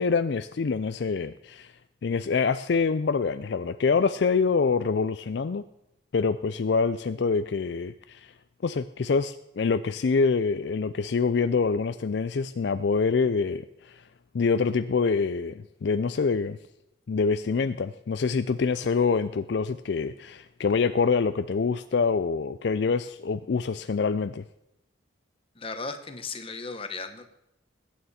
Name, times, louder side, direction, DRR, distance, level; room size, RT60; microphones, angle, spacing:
voice 1, 0.0-1.7 2.0-5.6 6.1-8.3 8.6-14.0 14.3-16.6 17.1-24.4, left 5 dB, 60° left, 12 dB, 0.4 m, -25 dB
voice 2, 25.5-27.3, left 4 dB, 30° left, 7 dB, 1.1 m, -36 dB
20.5 x 9.3 x 4.3 m, 0.87 s
head